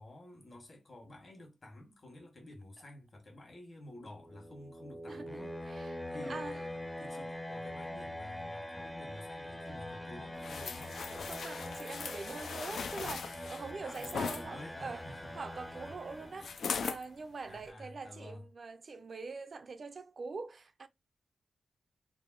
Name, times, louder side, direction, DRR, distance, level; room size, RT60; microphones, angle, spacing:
voice 1, 0.0-11.0 13.8-15.3 17.5-18.5, left 1 dB, 50° left, 1.3 m, -51 dB
sound 1, 4.0-16.9, left 1 dB, 10° left, 0.5 m, -43 dB
voice 2, 5.1-6.6 11.1-15.1 15.3-20.9, right 4 dB, 60° right, 0.4 m, -44 dB
taking off a coat and tossing it on the ground, 10.4-14.4 16.4-17.0 17.6-17.7, left 6 dB, 90° left, 0.3 m, -39 dB
3.4 x 2.2 x 2.4 m
cardioid pair, 75°, 0 cm